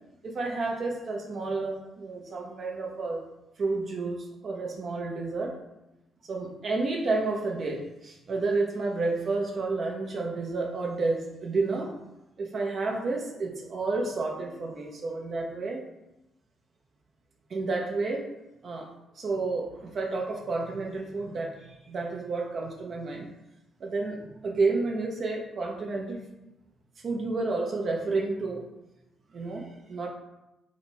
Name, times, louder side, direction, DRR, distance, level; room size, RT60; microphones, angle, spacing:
voice 1, 0.2-3.2 3.6-5.6 6.2-11.9 12.4-15.8 17.5-18.3 18.6-18.9 19.2-23.3 23.8-26.2 27.0-28.6 29.3-30.1, right 3 dB, 50° right, 0 dB, 0.6 m, -30 dB
3.9 x 2.1 x 4.4 m, 0.93 s
cardioid pair, 90°, 0 cm